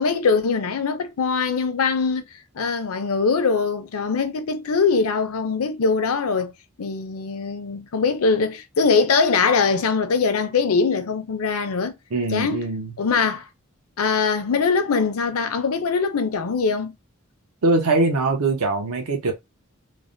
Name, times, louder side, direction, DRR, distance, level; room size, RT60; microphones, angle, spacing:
voice 1, 0.0-2.2 2.5-6.5 6.8-11.9 12.3-12.7 13.0-13.5 14.0-16.9, left 4 dB, 75° left, 0.5 m, -22 dB
voice 2, 12.1-12.9 17.6-19.3, right 3 dB, 80° right, 0.7 m, -22 dB
3.2 x 2.1 x 2.5 m
head